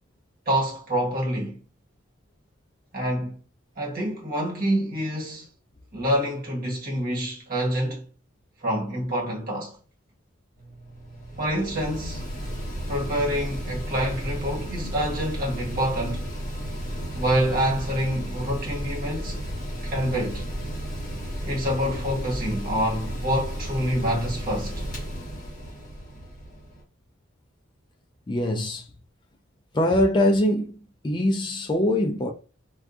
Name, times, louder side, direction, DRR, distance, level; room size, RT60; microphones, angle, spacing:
voice 1, 0.5-1.6 2.9-3.4 3.8-5.5 5.9-8.0 8.6-9.8 11.4-12.2 12.9-16.3 17.1-19.5 19.8-20.4 21.4-24.8, equal, 45° right, 1.1 m, -27 dB
Mechanical fan, 10.5-26.8, equal, 40° left, 1.4 m, -33 dB
voice 2, 28.3-28.9 29.7-30.8 31.0-32.3, left 1 dB, 20° left, 0.4 m, -22 dB
2.6 x 2.3 x 3.6 m
head